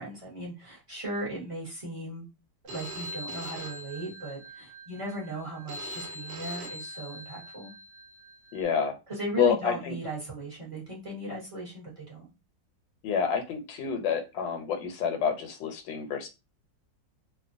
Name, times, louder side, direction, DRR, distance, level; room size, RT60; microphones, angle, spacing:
voice 1, 0.0-2.3 2.7-7.7 9.1-12.2, right 2 dB, 35° right, -5 dB, 0.5 m, -37 dB
Telephone, 2.7-8.6, equal, 85° right, 0.6 m, -42 dB
voice 2, 8.5-9.0 9.4-10.0 13.0-16.3, left 7 dB, 85° left, 6 dB, 1.3 m, -28 dB
2.9 x 2.1 x 2.5 m, 0.26 s
omnidirectional pair, 2.0 m